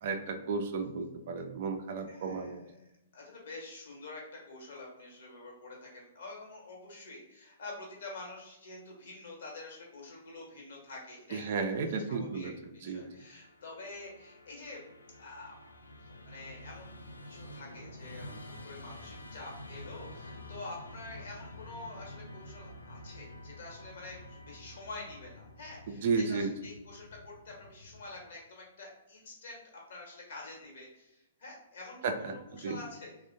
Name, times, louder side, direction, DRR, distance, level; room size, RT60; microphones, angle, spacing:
voice 1, 0.0-2.6 11.3-13.1 25.9-26.5 32.0-32.8, right 4 dB, 50° right, 6 dB, 0.3 m, -33 dB
voice 2, 2.1-2.7 3.1-11.6 11.9-14.8 15.2-15.7 16.2-16.9 17.2-18.3 18.6-29.6 29.9-33.2, left 2 dB, 55° left, -1 dB, 1.1 m, -47 dB
Musical instrument, 13.1-28.4, left 1 dB, 75° left, 0.4 m, -49 dB
3.3 x 2.1 x 2.6 m, 0.90 s
figure-of-eight pair, 110°, 0 cm